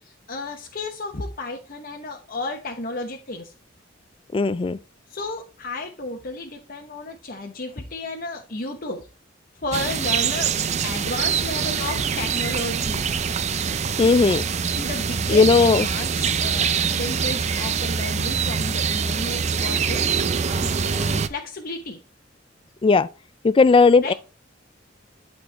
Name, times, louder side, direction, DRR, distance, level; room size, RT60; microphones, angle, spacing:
voice 1, 0.0-3.5 5.1-9.1 9.5-10.5 10.8-13.0 14.7-22.0 24.0-24.1, left 2 dB, 50° left, 1.1 m, -33 dB
voice 2, 4.3-4.8 14.0-14.4 15.3-15.9 22.8-23.1 23.4-24.1, left 4 dB, 30° left, 0.3 m, -16 dB
sound 1, 9.7-21.3, right 6 dB, 35° right, 0.5 m, -24 dB
11.5 x 4.4 x 3.3 m
head